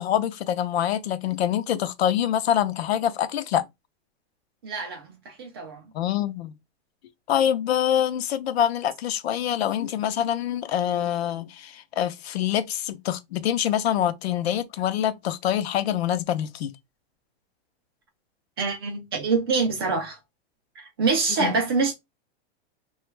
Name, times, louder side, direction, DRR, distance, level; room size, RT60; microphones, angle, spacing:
voice 1, 0.0-3.6 5.9-6.5 7.3-16.7 21.4-21.5, left 10 dB, 75° left, 0.6 m, -25 dB
voice 2, 4.6-5.8 18.6-20.2 20.8-21.9, right 4 dB, 25° right, 0.3 m, -25 dB
2.9 x 2.3 x 3.2 m
supercardioid pair, 170°, 32 cm